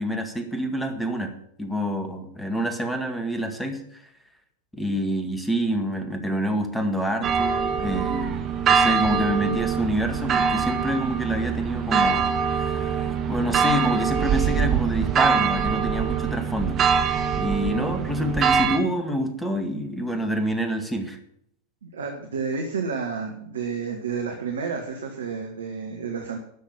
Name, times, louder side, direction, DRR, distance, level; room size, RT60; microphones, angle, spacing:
voice 1, 0.0-1.3 1.6-4.0 4.7-8.4 8.7-21.2, equal, 5° left, 6 dB, 1.9 m, -27 dB
sound 1, 7.2-18.8, right 7 dB, 30° right, 1.5 m, -23 dB
voice 2, 21.8-26.4, right 5 dB, 65° right, 3 dB, 1.6 m, -30 dB
12.5 x 6.5 x 8.3 m, 0.72 s
figure-of-eight pair, 90°, 0 cm